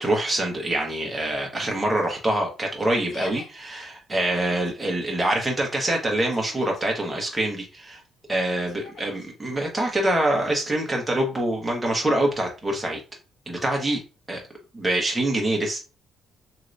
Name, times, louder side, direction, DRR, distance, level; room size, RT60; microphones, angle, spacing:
voice 1, 0.0-8.0 8.3-13.0 13.5-14.0 14.3-14.4 14.7-15.8, right 1 dB, 15° right, 0 dB, 1.1 m, -25 dB
Yell, 1.6-2.0 2.9-3.5 4.2-4.7 5.9-6.8 8.7-9.3, left 3 dB, 65° left, 1.0 m, -44 dB
3.1 x 2.9 x 2.6 m, 0.31 s
cardioid pair, 90°, 0 cm